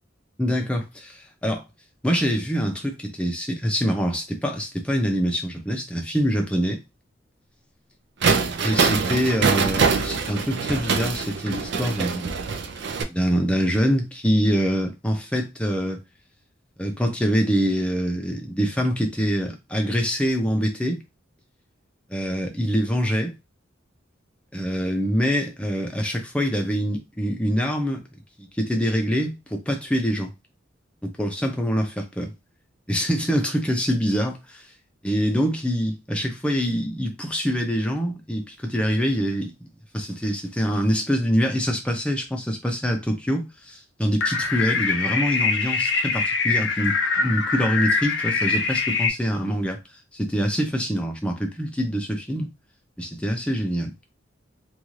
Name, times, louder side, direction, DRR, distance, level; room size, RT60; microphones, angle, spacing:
voice 1, 0.4-1.6 2.0-6.8 8.6-12.4 13.1-16.0 16.8-21.0 22.1-23.3 24.5-28.0 28.6-30.3 31.2-32.3 32.9-34.6 35.0-39.7 39.9-49.8 50.1-52.5 53.0-53.9, equal, 5° left, 0.6 m, -25 dB
sound 1, 8.2-13.0, right 5 dB, 65° right, 0.4 m, -24 dB
sound 2, 44.2-49.1, left 4 dB, 65° left, 0.4 m, -23 dB
2.6 x 2.4 x 3.1 m
head